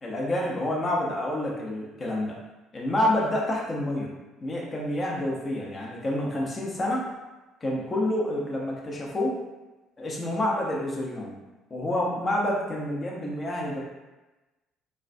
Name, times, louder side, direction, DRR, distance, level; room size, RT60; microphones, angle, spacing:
voice 1, 0.0-2.4 2.7-4.1 4.4-7.0 7.6-9.4 10.0-11.4 11.7-13.8, left 1 dB, 35° left, -2 dB, 0.7 m, -28 dB
2.3 x 2.2 x 2.5 m, 1.1 s
hypercardioid pair, 55°, 0 cm